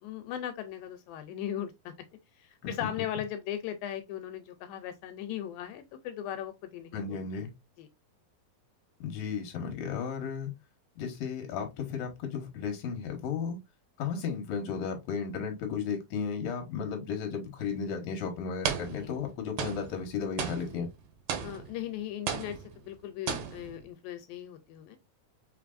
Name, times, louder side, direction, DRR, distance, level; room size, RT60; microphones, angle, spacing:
voice 1, 0.0-2.0 2.4-7.5 7.8-7.9 19.0-19.1 21.4-25.0, left 11 dB, 85° left, 2.3 m, -38 dB
voice 2, 6.9-7.5 9.0-10.5 11.0-13.6 14.0-20.9, left 6 dB, 60° left, 2.0 m, -34 dB
sound 1, 17.6-17.8 18.6-19.3 19.6-21.9 22.3-23.0 23.3-23.8, right 8 dB, 70° right, 2.0 m, -36 dB
5.4 x 3.4 x 2.4 m
omnidirectional pair, 4.2 m